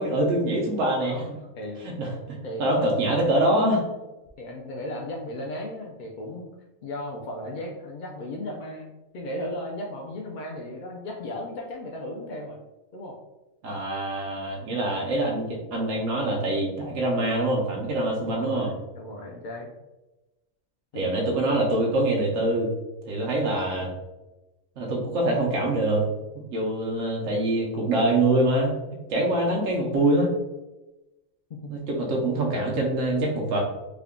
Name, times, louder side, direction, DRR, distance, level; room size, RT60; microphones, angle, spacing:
voice 1, 0.0-1.2 1.8-3.8 13.6-18.7 20.9-22.7 23.1-23.9 24.8-26.0 26.5-30.3 31.7-33.6, right 1 dB, 70° right, -2 dB, 1.0 m, -24 dB
voice 2, 1.0-1.8 2.4-2.9 4.4-6.5 6.8-8.9 9.1-12.6 12.9-13.2 14.6-14.8 18.2-19.7 20.9-21.1 31.8-31.9, left 1 dB, 70° left, -1 dB, 0.4 m, -36 dB
3.5 x 2.2 x 3.6 m, 1.0 s
omnidirectional pair, 1.4 m